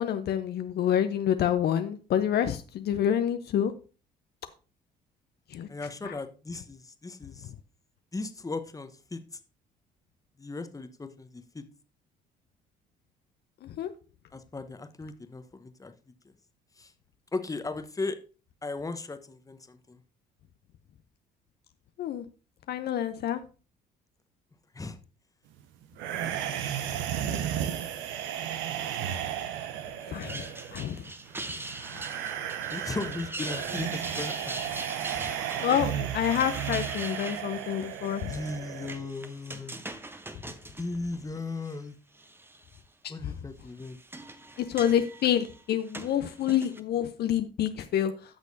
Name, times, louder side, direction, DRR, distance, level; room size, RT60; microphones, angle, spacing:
voice 1, 0.0-3.7 5.5-5.7 6.0-6.1 13.6-13.9 22.0-22.2 22.7-23.4 30.1-31.0 35.6-38.3 43.0-43.3 44.6-48.1, left 10 dB, 50° left, 0.7 m, -28 dB
voice 2, 5.7-7.5 8.1-9.2 10.4-11.6 14.3-15.9 16.8-16.9 17.3-18.2 18.6-20.0 24.7-25.0 26.2-26.6 27.2-28.1 32.7-34.4 38.2-39.8 40.8-41.9 43.1-44.0, left 3 dB, 15° left, 1.0 m, -37 dB
sound 1, 26.0-39.0, right 10 dB, 65° right, 0.8 m, -34 dB
sound 2, 30.0-41.8 42.2-42.8 43.6-46.8, right 2 dB, 10° right, 0.9 m, -42 dB
13.5 x 6.3 x 2.7 m
hypercardioid pair, 55°, 21 cm